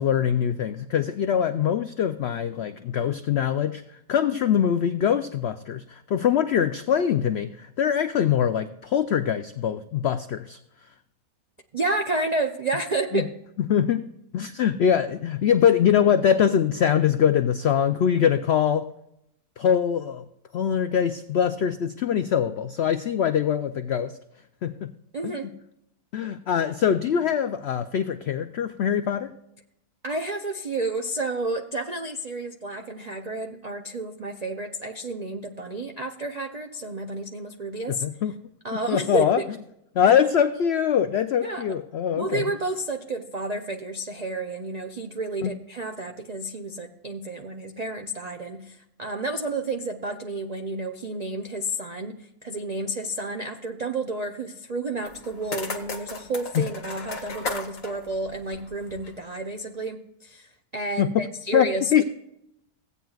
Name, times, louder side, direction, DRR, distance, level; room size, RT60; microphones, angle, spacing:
voice 1, 0.0-3.8 4.1-10.6 13.1-13.2 13.7-14.0 14.3-18.9 19.6-20.2 20.5-24.2 24.6-24.9 25.2-25.3 26.1-29.3 37.9-38.3 38.9-39.4 39.9-42.4 45.4-45.5 61.0-61.1 61.5-61.7 61.9-62.0, left 8 dB, 75° left, 9 dB, 0.5 m, -23 dB
voice 2, 11.7-13.3 25.1-25.5 30.0-38.0 38.6-39.5 41.4-41.6 42.2-62.0, right 2 dB, 65° right, 4 dB, 0.4 m, -31 dB
sound 1, 55.1-59.2, left 3 dB, 60° left, 1.6 m, -36 dB
16.0 x 9.0 x 2.3 m, 0.80 s
omnidirectional pair, 1.6 m